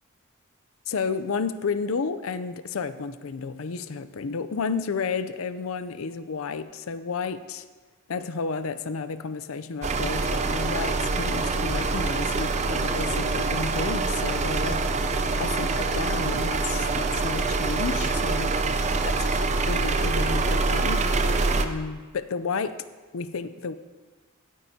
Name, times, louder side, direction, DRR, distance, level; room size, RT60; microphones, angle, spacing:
voice 1, 0.9-7.6 8.1-18.6 19.0-19.4 19.7-21.0 21.6-22.8 23.1-23.8, left 5 dB, 70° left, 13 dB, 0.5 m, -32 dB
sound 1, 9.8-21.7, right 3 dB, 35° right, 0.6 m, -25 dB
16.5 x 9.4 x 2.8 m, 1.4 s
head